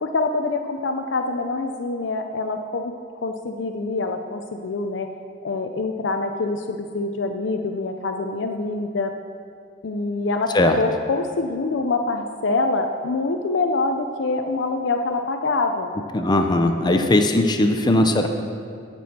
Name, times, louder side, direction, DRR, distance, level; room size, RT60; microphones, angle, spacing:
voice 1, 0.0-2.9 3.2-5.1 5.4-9.1 9.8-15.9 16.9-17.1, left 3 dB, 70° left, 5 dB, 0.5 m, -25 dB
voice 2, 16.1-18.3, left 1 dB, 25° left, 6 dB, 0.5 m, -18 dB
17.0 x 6.2 x 4.3 m, 2.3 s
head